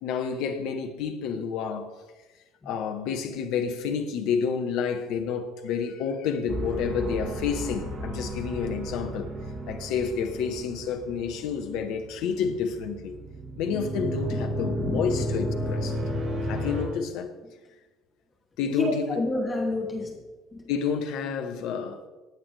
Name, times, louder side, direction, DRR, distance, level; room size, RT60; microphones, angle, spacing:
voice 1, 0.0-1.9 2.6-9.3 9.7-13.2 13.6-16.0 16.5-17.4 18.6-19.3 20.7-22.0, left 6 dB, 55° left, 1.0 m, -29 dB
sound 1, 6.5-16.8, equal, 35° right, 1.9 m, -32 dB
voice 2, 18.7-20.2 20.5-20.6, left 2 dB, 20° left, 2.6 m, -29 dB
16.0 x 9.0 x 3.4 m
figure-of-eight pair, 55°, 0 cm